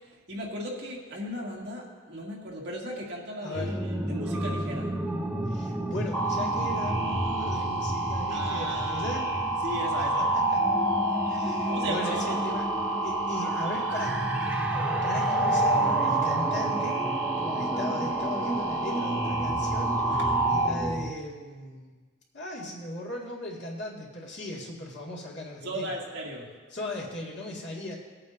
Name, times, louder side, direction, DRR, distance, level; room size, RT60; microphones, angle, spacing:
voice 1, 0.3-4.9 8.3-10.3 11.7-12.4 20.1-20.4 25.6-26.5, right 1 dB, 55° right, -3 dB, 2.1 m, -37 dB
voice 2, 3.4-3.7 5.5-9.3 10.5-10.6 11.3-12.6 13.0-14.6 15.0-17.0 17.4-20.1 20.5-22.0 22.3-25.9 26.7-28.0, left 1 dB, 60° left, -4 dB, 2.2 m, -37 dB
sound 1, 3.5-21.1, right 1 dB, 5° right, 0.4 m, -33 dB
sound 2, 6.1-20.7, right 2 dB, 10° left, 3.3 m, -28 dB
20.0 x 8.6 x 2.7 m, 1.4 s
head